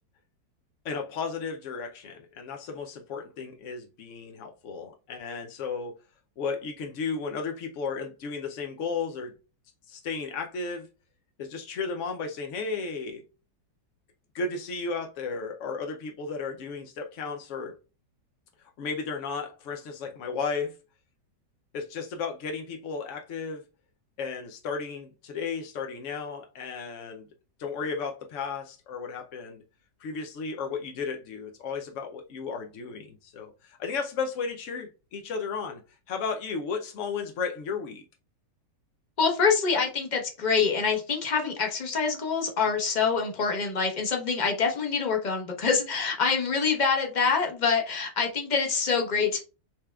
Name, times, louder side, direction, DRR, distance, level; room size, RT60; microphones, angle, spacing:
voice 1, 0.8-5.9 6.4-9.3 9.9-10.9 11.4-13.3 14.3-17.8 18.6-20.8 21.7-23.6 24.2-27.2 27.6-29.6 30.0-35.8 36.1-38.0, left 5 dB, 70° left, 0.7 m, -34 dB
voice 2, 39.2-49.4, left 5 dB, 35° left, 0.9 m, -25 dB
5.7 x 3.4 x 2.3 m
omnidirectional pair, 1.9 m